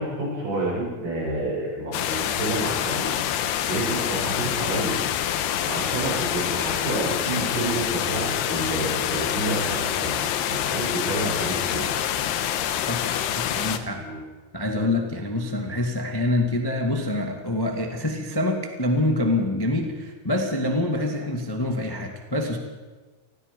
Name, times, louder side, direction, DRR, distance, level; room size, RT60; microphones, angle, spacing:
voice 1, 0.0-4.9 5.6-11.9 13.6-13.7 14.0-14.2, right 1 dB, 70° right, -4 dB, 10.0 m, -29 dB
sound 1, 1.9-13.8, left 10 dB, 90° left, 3.2 m, -26 dB
voice 2, 12.9-14.0 14.5-22.6, left 1 dB, 15° left, 3 dB, 0.9 m, -26 dB
28.0 x 20.5 x 5.4 m, 1.3 s
omnidirectional pair, 4.6 m